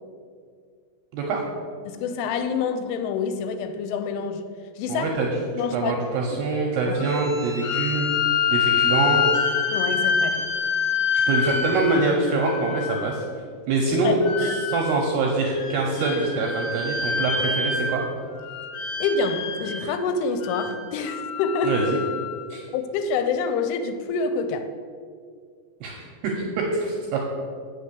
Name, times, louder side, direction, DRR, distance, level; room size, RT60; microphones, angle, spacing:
voice 1, 1.9-4.4 4.8-5.1 5.5-6.0 6.3-6.4 6.9-7.0 9.7-10.5 14.0-14.6 19.0-21.9 22.7-24.7, left 5 dB, 80° left, 8 dB, 3.0 m, -27 dB
voice 2, 4.9-5.4 5.7-8.2 8.5-9.3 11.3-13.2 13.7-18.0 21.6-22.0 22.5-22.6 25.8-26.1 26.3-27.2, right 3 dB, 80° right, 0 dB, 2.4 m, -24 dB
sound 1, 7.0-13.2 14.2-15.1 15.5-18.2 18.4-19.9 20.4-22.4, left 6 dB, 65° left, 2.6 m, -26 dB
8.3 x 6.3 x 6.8 m, 2.1 s
omnidirectional pair, 5.7 m